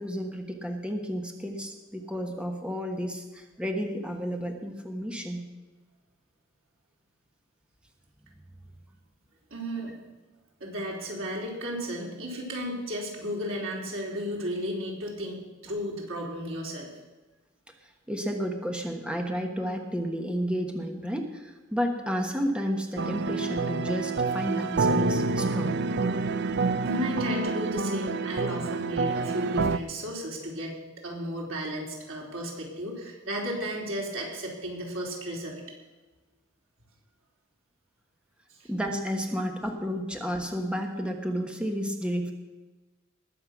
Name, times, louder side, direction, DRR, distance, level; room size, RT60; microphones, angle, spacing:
voice 1, 0.0-5.4 17.8-25.9 38.7-42.3, equal, 5° right, 3 dB, 1.2 m, -31 dB
voice 2, 9.5-9.9 10.6-16.9 26.8-35.6 38.5-38.7, equal, 85° right, -2 dB, 4.0 m, -34 dB
sound 1, 23.0-29.8, right 3 dB, 55° right, 0.5 m, -28 dB
20.0 x 7.7 x 6.1 m, 1.2 s
head